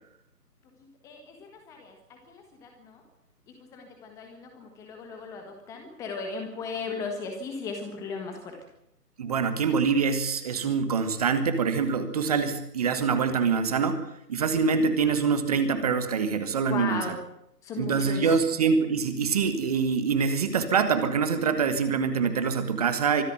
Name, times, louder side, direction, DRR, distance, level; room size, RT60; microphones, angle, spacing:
voice 1, 1.0-3.0 3.7-8.5 16.7-17.2 17.6-18.4, left 4 dB, 5° left, 4 dB, 1.5 m, -37 dB
voice 2, 9.2-14.0 14.3-17.1 17.8-23.2, right 5 dB, 25° right, 10 dB, 1.5 m, -25 dB
24.5 x 12.5 x 9.0 m, 0.75 s
figure-of-eight pair, 150°, 48 cm